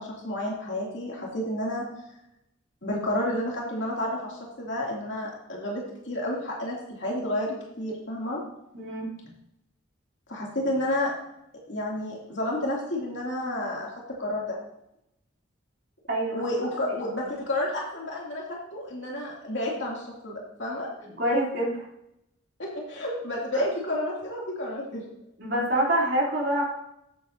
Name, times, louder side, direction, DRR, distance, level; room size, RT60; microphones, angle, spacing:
voice 1, 0.0-1.8 2.8-8.4 10.3-11.1 11.7-13.9 14.2-14.6 16.3-18.4 18.7-20.9 22.6-25.0, left 1 dB, 65° left, -3 dB, 2.6 m, -30 dB
voice 2, 8.7-9.1 16.1-16.4 21.2-21.8 23.5-23.6 25.4-26.6, right 1 dB, 55° right, -4 dB, 3.1 m, -26 dB
14.0 x 7.9 x 2.7 m, 0.81 s
head